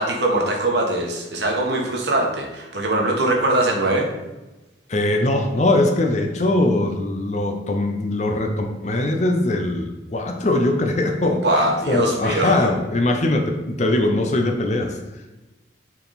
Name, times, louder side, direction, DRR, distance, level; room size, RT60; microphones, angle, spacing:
voice 1, 0.0-4.1 11.3-12.7, right 1 dB, 65° right, 0 dB, 1.3 m, -22 dB
voice 2, 4.9-15.0, left 2 dB, 40° left, 4 dB, 0.6 m, -21 dB
6.8 x 4.0 x 4.1 m, 1.1 s
head